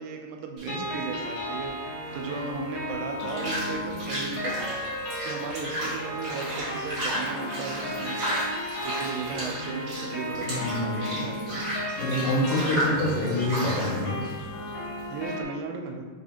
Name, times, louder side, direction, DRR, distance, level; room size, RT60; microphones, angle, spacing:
voice 1, 0.0-1.8 2.1-8.2 8.7-11.6 15.1-16.1, right 4 dB, 85° right, 3 dB, 2.6 m, -36 dB
sound 1, 0.6-15.3, right 1 dB, 65° right, 1.2 m, -34 dB
sound 2, 0.7-15.4, equal, 70° left, 2.5 m, -35 dB
voice 2, 10.4-11.2 11.5-11.6 12.0-14.2, left 1 dB, 85° left, -7 dB, 2.0 m, -27 dB
5.8 x 3.1 x 2.7 m, 1.4 s
omnidirectional pair, 4.7 m